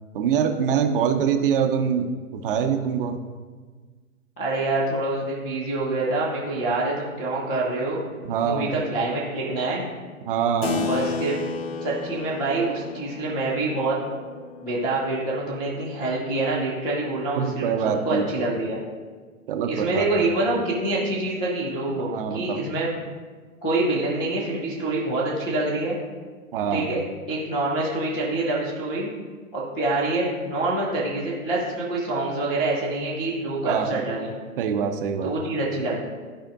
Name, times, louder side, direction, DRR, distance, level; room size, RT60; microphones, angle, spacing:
voice 1, 0.1-3.2 8.2-8.7 10.3-10.9 17.4-18.5 19.5-20.0 22.0-22.7 26.5-26.9 33.6-34.0 34.6-35.3, right 7 dB, 40° right, 6 dB, 0.7 m, -24 dB
voice 2, 4.4-8.0 8.4-9.8 10.9-11.4 11.8-14.0 14.6-18.8 19.7-22.9 23.6-26.0 26.7-27.0 27.3-29.1 29.5-34.3 35.2-35.9, right 2 dB, 5° left, -9 dB, 0.3 m, -26 dB
Keyboard (musical), 10.6-16.6, left 5 dB, 45° left, 0.7 m, -34 dB
14.0 x 5.0 x 2.6 m, 1.5 s
figure-of-eight pair, 120°, 43 cm